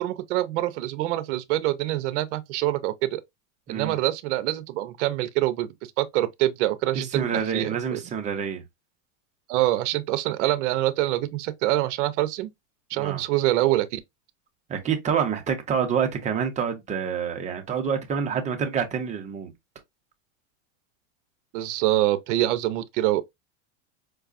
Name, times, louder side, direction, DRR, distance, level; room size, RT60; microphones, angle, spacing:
voice 1, 0.0-3.2 3.7-5.7 6.0-8.0 9.5-12.5 12.9-14.0 21.5-23.2, right 15 dB, 70° right, 0.6 m, -25 dB
voice 2, 6.9-8.6 13.0-13.2 14.7-19.5, right 7 dB, 20° right, 0.6 m, -27 dB
4.7 x 2.3 x 2.4 m
supercardioid pair, 145°, 37 cm